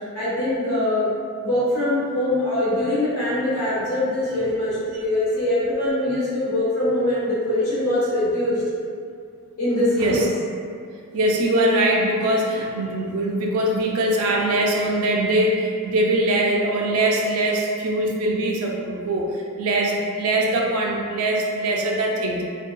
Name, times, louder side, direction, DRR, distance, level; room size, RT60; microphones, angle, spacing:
voice 1, 0.1-1.1 1.4-8.6 9.6-10.2, left 1 dB, 75° left, -10 dB, 1.1 m, -23 dB
voice 2, 10.0-10.3 11.1-22.4, right 1 dB, 70° right, -1 dB, 0.4 m, -22 dB
2.7 x 2.3 x 2.2 m, 2.3 s
head